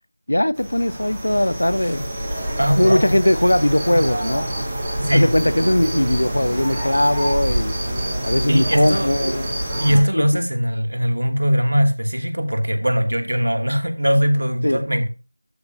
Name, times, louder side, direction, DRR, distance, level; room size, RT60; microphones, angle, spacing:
voice 1, 0.3-2.0 2.8-4.4 5.1-7.7 8.2-9.5 10.1-10.4 14.6-14.8, left 1 dB, 55° left, 0.8 m, -19 dB
sound 1, 0.5-10.0, right 1 dB, 5° right, 1.1 m, -26 dB
voice 2, 2.6-3.2 3.9-4.0 5.0-5.3 8.5-9.1 9.8-15.1, equal, 55° right, 2.5 m, -20 dB
13.0 x 8.2 x 2.7 m
figure-of-eight pair, 180°, 0 cm